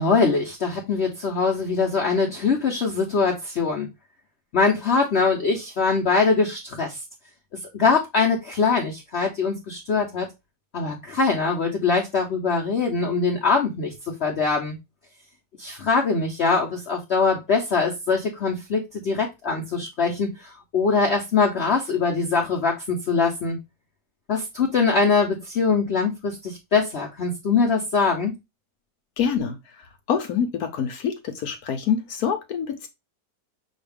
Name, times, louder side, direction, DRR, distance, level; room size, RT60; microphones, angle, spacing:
voice 1, 0.0-3.9 4.5-7.0 7.7-10.3 10.7-14.7 15.6-23.6 24.3-28.3, left 4 dB, 55° left, 0.8 m, -22 dB
voice 2, 29.2-29.6 30.1-32.9, left 7 dB, 70° left, 1.1 m, -25 dB
6.3 x 2.4 x 3.4 m
omnidirectional pair, 1.8 m